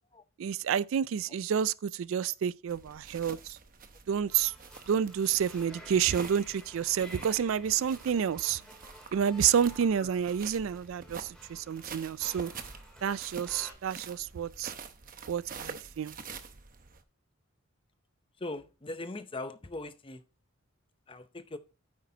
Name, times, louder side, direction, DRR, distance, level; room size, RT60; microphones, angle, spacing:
voice 1, 0.4-3.6 4.1-4.5 4.9-8.6 9.1-12.5 13.0-14.7 15.3-16.1, right 8 dB, 70° right, 0.3 m, -29 dB
sound 1, 2.7-17.0, right 5 dB, 40° right, 0.8 m, -47 dB
sound 2, 4.3-13.7, equal, 5° left, 3.1 m, -52 dB
voice 2, 18.4-20.2 21.1-21.6, left 2 dB, 25° left, 0.7 m, -40 dB
9.5 x 8.2 x 2.8 m
head